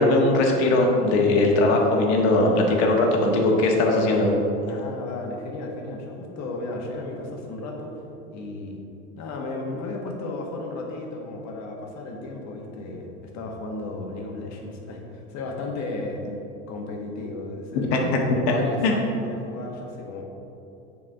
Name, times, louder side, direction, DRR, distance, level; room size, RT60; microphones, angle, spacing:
voice 1, 0.0-4.3 17.9-18.0 18.8-18.9, left 2 dB, 65° left, 0 dB, 1.6 m, -19 dB
voice 2, 4.7-7.9 8.3-8.8 9.1-16.2 16.7-20.2, left 2 dB, 50° left, 1 dB, 1.5 m, -34 dB
7.7 x 4.8 x 5.0 m, 2.9 s
hypercardioid pair, 100°, 35 cm